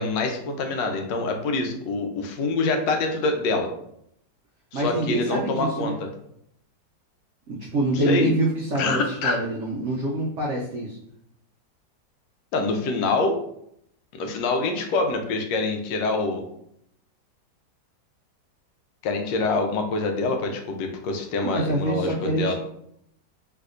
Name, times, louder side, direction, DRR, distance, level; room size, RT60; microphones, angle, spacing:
voice 1, 0.0-3.7 4.7-6.1 7.9-8.3 8.8-9.4 12.5-13.4 14.2-16.4 19.0-22.5, left 3 dB, 85° left, 4 dB, 1.3 m, -25 dB
voice 2, 4.7-5.9 7.5-11.0 21.4-22.5, right 1 dB, 90° right, -3 dB, 0.6 m, -26 dB
3.4 x 2.7 x 2.4 m, 0.72 s
omnidirectional pair, 1.9 m